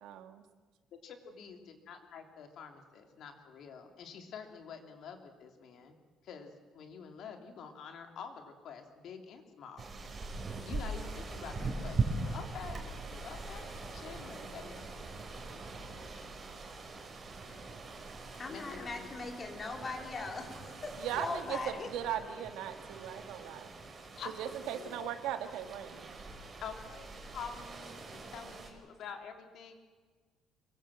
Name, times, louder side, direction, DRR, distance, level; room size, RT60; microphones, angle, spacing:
voice 1, 0.0-0.4 21.0-23.7 24.4-26.2, right 10 dB, 85° right, 7 dB, 2.3 m, -38 dB
voice 2, 0.9-6.0 6.2-9.9 10.6-14.9 18.5-19.1 24.1-25.1 26.6-29.7, left 6 dB, 55° left, 5 dB, 3.3 m, -47 dB
sound 1, 9.8-28.7, right 3 dB, 30° right, 4.5 m, -42 dB
voice 3, 18.4-21.9, left 3 dB, 30° left, 3 dB, 3.9 m, -40 dB
25.5 x 22.5 x 7.8 m, 1.4 s
cardioid pair, 150°, 0 cm